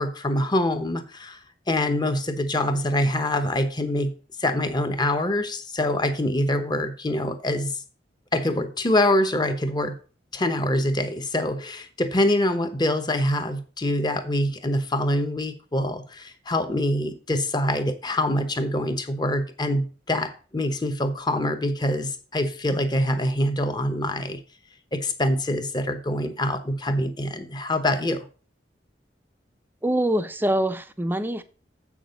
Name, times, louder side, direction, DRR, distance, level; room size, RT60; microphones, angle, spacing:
voice 1, 0.0-1.4 1.7-4.1 4.4-7.7 8.3-10.0 10.3-24.4 24.9-28.3, left 1 dB, 25° left, 0.9 m, -25 dB
voice 2, 29.8-31.4, right 1 dB, 10° right, 0.6 m, -24 dB
7.7 x 6.2 x 5.1 m
head